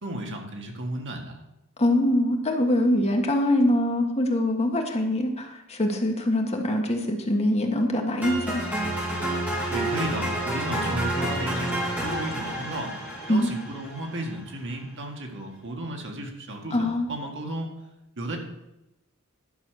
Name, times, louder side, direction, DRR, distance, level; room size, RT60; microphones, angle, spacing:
voice 1, 0.0-1.4 9.7-12.9 13.3-17.7 18.2-18.4, right 1 dB, 60° right, 2 dB, 1.9 m, -34 dB
voice 2, 1.8-8.6 13.3-13.5 16.7-17.1, left 1 dB, 30° left, 3 dB, 1.5 m, -23 dB
sound 1, 8.2-14.3, right 1 dB, 10° right, 3.8 m, -29 dB
11.5 x 6.3 x 6.5 m, 0.92 s
head